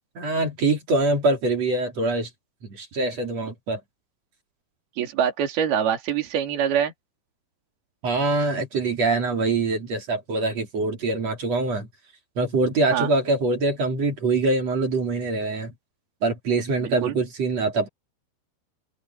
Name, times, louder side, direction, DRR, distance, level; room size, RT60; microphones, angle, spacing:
voice 1, 0.2-2.3 2.6-3.8 8.0-11.9 12.4-15.7 16.2-17.9, right 3 dB, 35° right, 3.8 m, -24 dB
voice 2, 5.0-6.9 12.9-13.1 16.8-17.2, right 8 dB, 55° right, 4.9 m, -24 dB
omnidirectional pair, 5.6 m